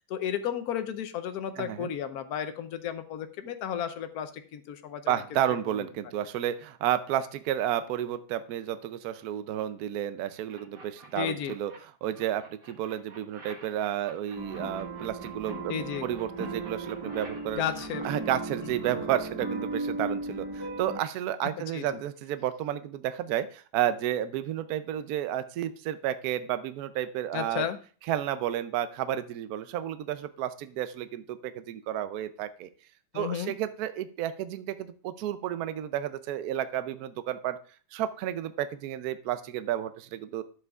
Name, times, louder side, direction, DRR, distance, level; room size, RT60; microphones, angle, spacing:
voice 1, 0.1-5.2 11.2-11.5 15.7-16.1 17.6-18.0 21.7-22.0 27.3-27.8 33.1-33.5, left 9 dB, 65° left, 9 dB, 1.0 m, -33 dB
voice 2, 1.6-1.9 5.1-11.7 12.0-15.7 16.0-17.6 18.0-27.6 28.1-32.7 33.1-37.6 37.9-40.4, right 11 dB, 70° right, 12 dB, 0.9 m, -31 dB
sound 1, 10.5-11.8 12.1-15.5 15.9-17.9, right 3 dB, 50° right, 1.8 m, -50 dB
sound 2, 14.3-21.0, right 3 dB, 15° right, 0.8 m, -36 dB
11.0 x 7.8 x 2.4 m, 0.40 s
omnidirectional pair, 2.1 m